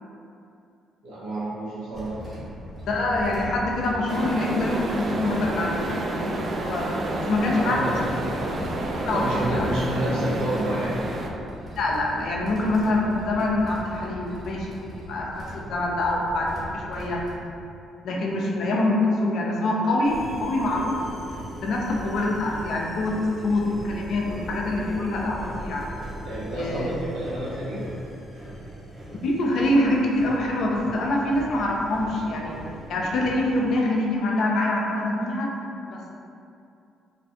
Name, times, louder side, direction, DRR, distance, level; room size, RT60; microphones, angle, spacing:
voice 1, 1.0-2.1 7.5-8.0 9.1-11.0 26.3-27.8, right 1 dB, 80° right, -8 dB, 0.7 m, -29 dB
sound 1, 1.9-17.4, equal, 35° right, 1.3 m, -39 dB
voice 2, 2.9-6.3 6.6-6.9 7.2-7.9 8.3-8.4 9.0-9.7 11.8-14.7 15.1-17.2 18.0-21.0 21.6-25.9 26.5-26.9 29.2-32.6 32.9-35.5 35.9-36.1, left 2 dB, 70° left, -2 dB, 0.4 m, -25 dB
sound 2, 4.1-11.3, right 1 dB, 50° right, 0.3 m, -29 dB
sound 3, 20.0-33.8, equal, 15° right, 0.8 m, -40 dB
2.5 x 2.3 x 2.6 m, 2.6 s
supercardioid pair, 60°, 0 cm